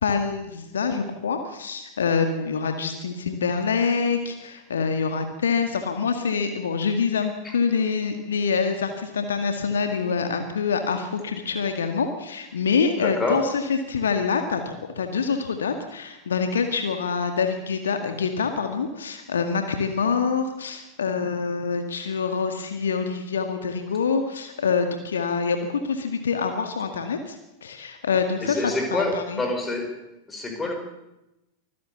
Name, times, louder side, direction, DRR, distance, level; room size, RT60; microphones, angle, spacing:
voice 1, 0.0-29.4, left 5 dB, 65° left, 6 dB, 2.0 m, -26 dB
voice 2, 13.0-13.5 28.4-30.0 30.3-30.7, left 2 dB, 15° left, 4 dB, 5.2 m, -27 dB
24.5 x 16.0 x 7.0 m, 0.94 s
figure-of-eight pair, 90°, 0 cm